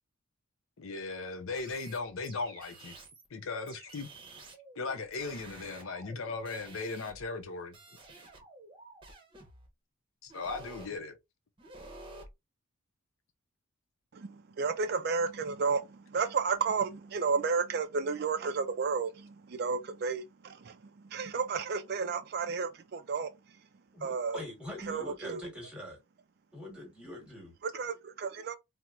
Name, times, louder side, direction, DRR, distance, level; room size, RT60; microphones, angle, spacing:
voice 1, 0.8-2.9 3.3-4.1 4.8-7.8 10.2-11.2, left 3 dB, 75° left, 0.6 m, -37 dB
sound 1, 1.5-3.3 3.7-7.4 7.7-9.7 10.3-11.0 11.6-12.3, right 2 dB, 25° right, 0.8 m, -51 dB
voice 2, 14.1-23.7 24.0-24.4 24.9-25.5 27.6-28.5, right 5 dB, 50° right, 0.3 m, -32 dB
voice 3, 23.9-26.0 26.5-27.5, left 1 dB, 5° right, 1.2 m, -44 dB
4.3 x 2.1 x 2.4 m
head